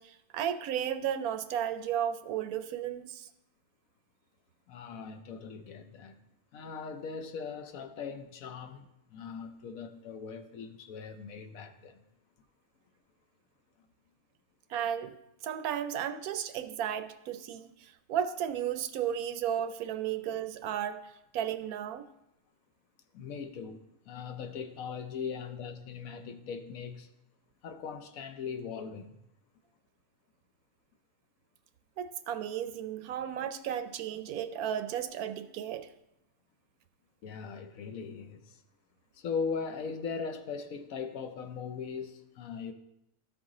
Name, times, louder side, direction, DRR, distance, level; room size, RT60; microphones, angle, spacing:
voice 1, 0.0-3.3 14.7-15.1 15.4-22.0 32.0-35.9, right 9 dB, 75° right, 1.0 m, -34 dB
voice 2, 4.7-6.2 6.5-12.0 23.1-27.1 27.6-29.2 37.2-38.6 39.1-42.7, left 6 dB, 70° left, 1.1 m, -39 dB
13.5 x 4.8 x 3.7 m
omnidirectional pair, 1.6 m